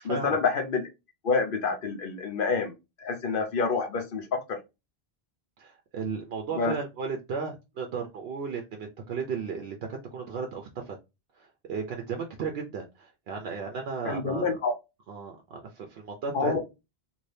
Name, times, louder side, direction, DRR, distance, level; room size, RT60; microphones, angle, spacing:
voice 1, 0.0-0.8 1.2-2.7 3.0-4.6 6.6-6.7 14.0-14.7 16.3-16.6, left 4 dB, 60° left, 4 dB, 0.9 m, -27 dB
voice 2, 5.6-11.0 11.4-14.6 15.1-16.5, right 5 dB, 75° right, 3 dB, 0.8 m, -35 dB
2.7 x 2.7 x 3.2 m, 0.25 s
omnidirectional pair, 1.0 m